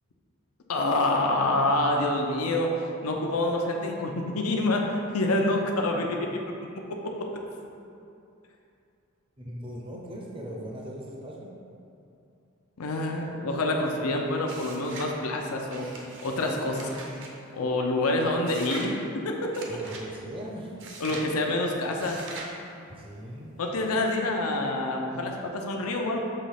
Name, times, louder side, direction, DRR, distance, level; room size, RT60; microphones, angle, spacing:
voice 1, 0.7-6.4 6.9-7.3 12.8-16.9 17.5-19.5 21.0-22.2 23.6-26.2, left 2 dB, 90° left, 1 dB, 0.6 m, -27 dB
voice 2, 9.4-11.5 19.7-20.7 22.9-23.6, equal, 25° right, -2 dB, 0.6 m, -39 dB
sound 1, 14.4-15.2 15.7-17.3 18.5-18.9 19.5-20.1 20.8-21.3 22.0-22.6, right 3 dB, 60° right, 0.8 m, -42 dB
6.5 x 3.1 x 5.7 m, 2.6 s
head